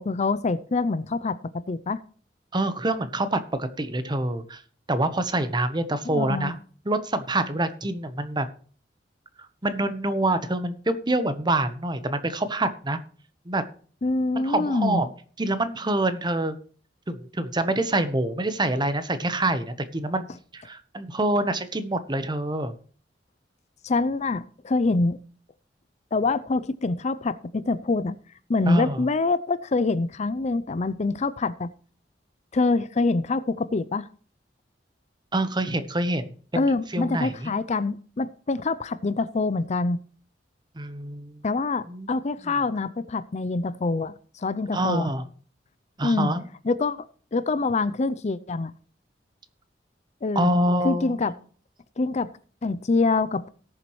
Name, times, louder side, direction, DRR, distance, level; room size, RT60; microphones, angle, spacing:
voice 1, 0.0-2.0 6.0-6.5 14.0-15.0 23.8-25.2 26.1-28.2 28.5-31.7 32.5-34.1 36.5-40.0 41.4-45.1 46.0-46.3 46.6-47.0 47.3-48.7 50.2-50.5 50.8-51.3 52.0-52.3 52.6-53.5, left 3 dB, 40° left, 15 dB, 0.5 m, -25 dB
voice 2, 2.5-4.6 4.9-6.6 6.8-8.5 9.6-13.0 13.5-13.6 14.4-15.1 15.4-16.6 17.1-20.2 20.5-22.7 28.7-29.0 35.3-37.5 40.8-41.4 41.9-42.1 42.4-42.6 44.7-45.2 46.0-46.5 50.3-51.2, right 1 dB, 25° right, 11 dB, 1.0 m, -26 dB
18.0 x 7.2 x 3.1 m, 0.42 s
head